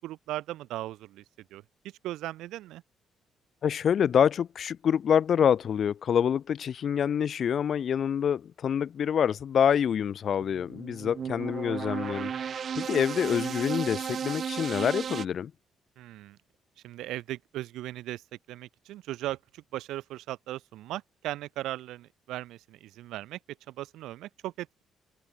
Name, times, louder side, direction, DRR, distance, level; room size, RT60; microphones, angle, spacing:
voice 1, 0.0-1.2 1.5-1.6 2.0-2.8 16.0-16.4 16.8-18.2 18.5-23.4 23.7-24.8, right 15 dB, 90° right, 1.1 m, -38 dB
voice 2, 3.6-12.3 12.8-15.5, left 8 dB, 60° left, 1.1 m, -26 dB
sound 1, 10.4-15.3, right 7 dB, 50° right, 0.9 m, -34 dB
open air
cardioid pair, 90°, 0 cm